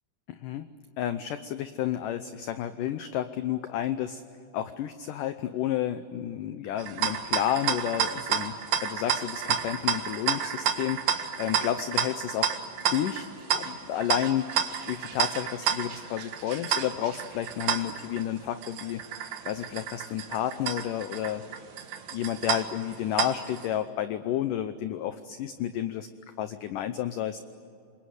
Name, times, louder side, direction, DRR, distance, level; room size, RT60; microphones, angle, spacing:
voice 1, 0.3-0.7 1.0-4.2 4.5-8.6 8.8-12.6 12.9-14.5 14.9-21.5 22.1-26.1 26.4-27.4, left 11 dB, 80° left, 11 dB, 1.9 m, -31 dB
sound 1, 6.8-23.7, right 8 dB, 65° right, 3.2 m, -31 dB
27.5 x 22.0 x 9.6 m, 2.6 s
omnidirectional pair, 4.8 m